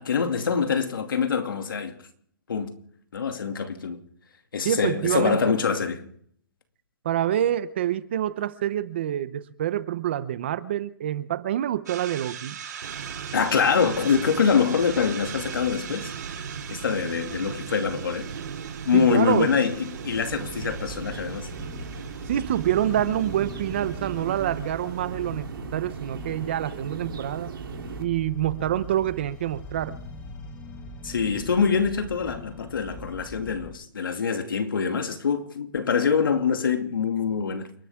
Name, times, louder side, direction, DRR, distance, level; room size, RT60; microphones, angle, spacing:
voice 1, 0.0-2.0 2.5-2.7 3.1-4.0 4.5-6.1 13.3-16.1 16.7-18.3 18.8-21.5 31.0-37.7, left 6 dB, 80° left, 2.6 m, -24 dB
voice 2, 4.6-5.5 7.0-12.6 18.9-19.5 22.3-25.5 25.7-27.5 28.0-30.0, right 11 dB, 30° right, 0.8 m, -26 dB
sound 1, 11.9-25.2, right 8 dB, 55° right, 6.5 m, -42 dB
sound 2, 12.8-28.0, right 7 dB, 85° right, 3.4 m, -37 dB
sound 3, 20.0-33.7, left 3 dB, 10° left, 1.3 m, -41 dB
29.5 x 11.5 x 3.7 m
hypercardioid pair, 175°, 11 cm